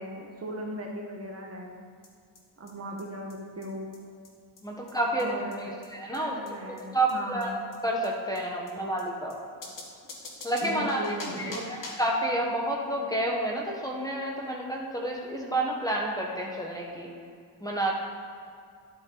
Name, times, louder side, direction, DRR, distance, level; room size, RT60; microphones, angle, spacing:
voice 1, 0.0-1.8 2.6-4.0 5.2-5.7 6.1-7.5 10.6-11.6, right 1 dB, 30° right, 0 dB, 1.4 m, -37 dB
sound 1, 2.0-2.1 2.3-2.4 2.7-2.8 3.0-3.1 3.3-3.4 3.6-3.7 3.9-4.0 4.2-4.3 4.6-4.7 4.9-5.0 5.2-5.3 5.5-5.6 5.8-5.9 6.1-6.2 6.5-6.6 6.8-6.9 7.1-7.2 7.4-7.5 7.7-7.8 8.0-8.1 8.3-8.4 8.7-8.8 9.0-9.1 9.3-9.4 9.6-12.1, left 2 dB, 45° left, 1.7 m, -44 dB
voice 2, 4.6-5.3 5.6-6.3 6.7-7.5 7.8-9.4 10.4-17.1 17.6-17.9, right 1 dB, 10° left, -2 dB, 1.3 m, -30 dB
11.5 x 8.5 x 4.0 m, 2.3 s
cardioid pair, 120°, 44 cm